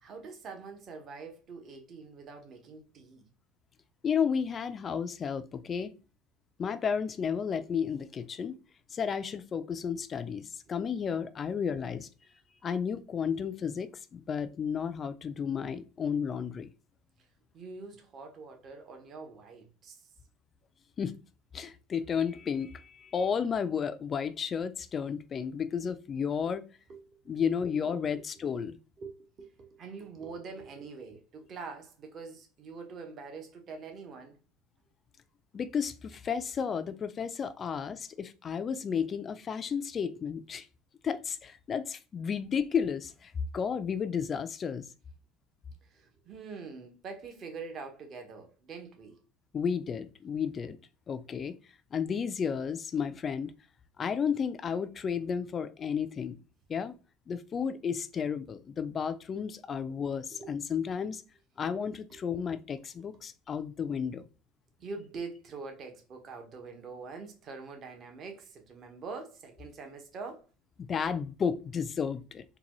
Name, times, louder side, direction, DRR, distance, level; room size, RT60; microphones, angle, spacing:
voice 1, 0.0-3.2 17.5-20.1 26.9-27.0 29.0-34.4 45.9-49.2 60.3-60.5 62.1-62.2 64.8-70.4, right 4 dB, 40° right, 0.8 m, -44 dB
voice 2, 4.0-5.9 6.6-8.6 8.9-12.1 12.6-16.7 21.0-21.1 21.5-26.6 27.3-28.8 35.5-40.7 41.0-44.9 49.5-50.8 51.1-51.6 51.9-53.5 54.0-56.4 56.7-57.0 57.3-61.2 61.6-64.2 70.8-72.4, left 7 dB, 30° left, 0.3 m, -32 dB
3.9 x 2.2 x 3.0 m
supercardioid pair, 125°, 0 cm